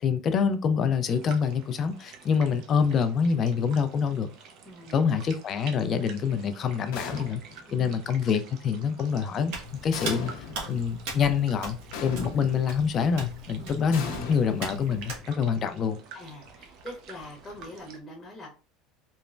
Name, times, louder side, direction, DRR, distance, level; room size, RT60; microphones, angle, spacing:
voice 1, 0.0-4.3 4.9-7.4 7.7-9.5 9.8-10.3 10.7-16.0, left 6 dB, 35° left, 0.3 m, -26 dB
sound 1, 1.0-18.0, right 6 dB, 55° right, 0.5 m, -49 dB
voice 2, 4.6-5.1 7.7-8.2 13.6-13.8 16.1-18.5, left 1 dB, 20° left, 0.8 m, -44 dB
sound 2, 6.9-7.7 9.9-10.7 11.9-12.7 13.9-15.1, left 4 dB, 80° left, 0.6 m, -38 dB
Hands, 9.5-15.2, right 1 dB, 80° right, 1.0 m, -39 dB
3.1 x 2.0 x 2.4 m
cardioid pair, 140°, 0 cm